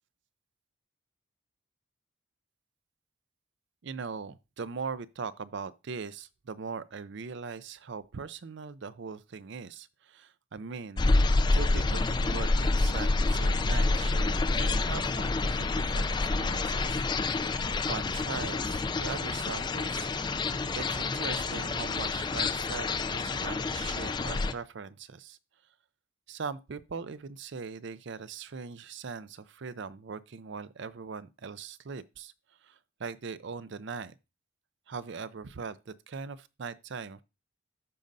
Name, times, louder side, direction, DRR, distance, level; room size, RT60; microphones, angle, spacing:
voice 1, 3.8-11.0 11.5-17.0 17.4-20.1 20.7-25.4 26.3-32.3 32.6-34.1 34.9-37.2, right 5 dB, 55° right, 0.5 m, -40 dB
sound 1, 11.0-24.5, left 3 dB, 20° left, 0.3 m, -28 dB
14.0 x 5.2 x 2.6 m
head